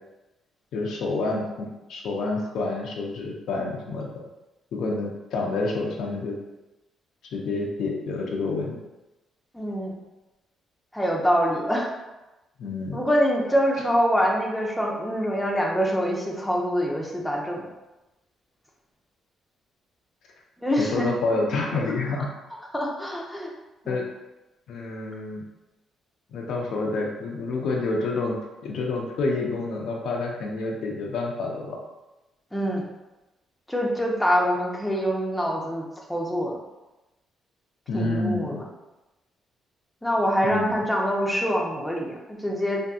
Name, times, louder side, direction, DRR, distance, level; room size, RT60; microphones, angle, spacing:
voice 1, 0.7-4.1 4.7-6.4 7.2-8.8 12.6-13.0 20.8-22.3 23.9-24.1 24.7-25.4 26.3-31.8 37.9-38.6 40.4-40.8, left 3 dB, 75° left, -1 dB, 0.5 m, -28 dB
voice 2, 9.5-9.9 10.9-11.9 12.9-17.7 20.6-21.4 22.7-23.5 23.8-24.0 32.5-32.8 33.7-36.6 37.9-38.6 40.0-42.8, equal, 5° left, -2 dB, 0.5 m, -25 dB
2.6 x 2.6 x 2.3 m, 1.0 s
cardioid pair, 90°, 0 cm